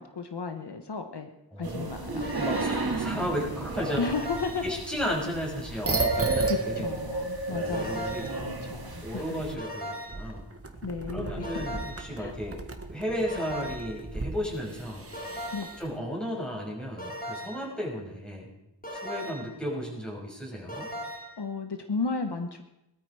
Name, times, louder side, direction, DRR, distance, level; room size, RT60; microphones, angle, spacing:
voice 1, 0.0-1.3 1.6-2.2 4.0-4.6 6.4-8.1 8.4-9.2 10.8-11.6 12.2-12.3 15.5-15.7 21.4-22.6, left 4 dB, 70° left, 6 dB, 1.2 m, -34 dB
voice 2, 1.5-4.1 4.6-6.9 7.5-8.3 9.0-10.4 11.1-12.6 12.9-15.1 15.8-18.5 18.9-20.9, equal, ahead, -3 dB, 6.4 m, -34 dB
sound 1, 1.6-9.6, right 3 dB, 60° right, 2.1 m, -36 dB
sound 2, 2.2-2.9 4.0-4.8 5.9-6.6 7.7-8.5 9.6-10.3 11.4-12.2 13.3-14.0 15.1-15.9 17.0-17.7 18.8-19.6 20.7-21.4, equal, 20° left, 3.8 m, -38 dB
sound 3, 5.6-9.1 9.4-9.5 10.1-15.8, right 3 dB, 35° right, 1.6 m, -33 dB
20.5 x 13.5 x 4.8 m, 0.91 s
wide cardioid pair, 70°, 42 cm